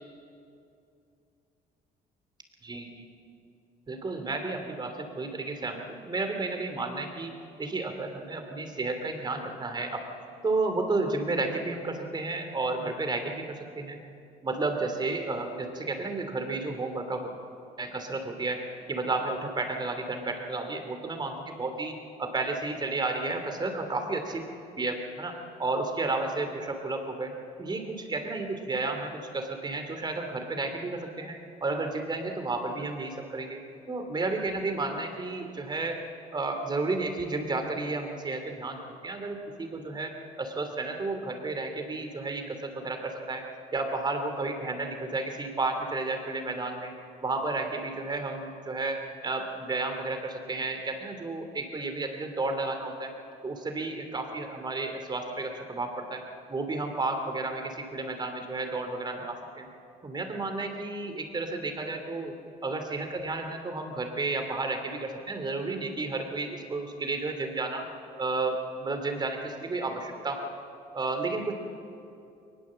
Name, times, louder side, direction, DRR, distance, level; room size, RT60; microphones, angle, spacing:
voice 1, 3.9-7.3 7.6-10.0 10.4-14.0 14.4-17.3 17.8-18.6 18.9-24.4 24.8-27.3 27.6-31.4 31.6-33.6 33.9-36.0 36.3-43.4 43.7-46.9 47.2-53.1 53.4-56.2 56.5-59.7 60.0-62.3 62.6-67.9 68.2-70.5 70.9-71.5, right 3 dB, 25° right, 5 dB, 3.0 m, -32 dB
22.0 x 20.0 x 7.6 m, 2.6 s
cardioid pair, 110°, 17 cm